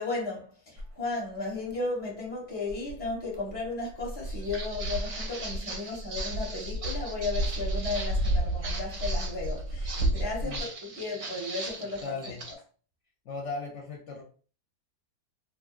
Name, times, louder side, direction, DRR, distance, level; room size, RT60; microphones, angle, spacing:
voice 1, 0.0-12.4, left 3 dB, 10° left, 0.8 m, -35 dB
Dog, 0.8-0.9 1.7-1.8 2.7-10.6, right 1 dB, 85° right, 1.1 m, -32 dB
Walk footsteps, 4.2-12.5, right 3 dB, 55° right, 0.6 m, -40 dB
voice 2, 12.0-12.4 13.2-14.2, left 4 dB, 60° left, 0.8 m, -37 dB
2.8 x 2.5 x 2.3 m
omnidirectional pair, 1.6 m